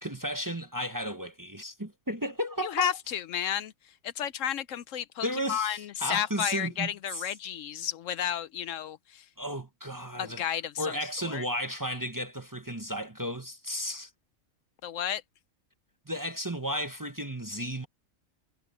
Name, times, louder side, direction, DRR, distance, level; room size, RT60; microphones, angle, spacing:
voice 1, 0.0-2.9 5.2-7.3 9.4-10.5 10.8-14.1 16.1-17.9, equal, 15° right, 0.9 m, -34 dB
voice 2, 2.6-9.3 10.2-10.9 11.2-11.4 14.8-15.2, left 9 dB, 70° left, 0.9 m, -32 dB
omnidirectional pair, 1.4 m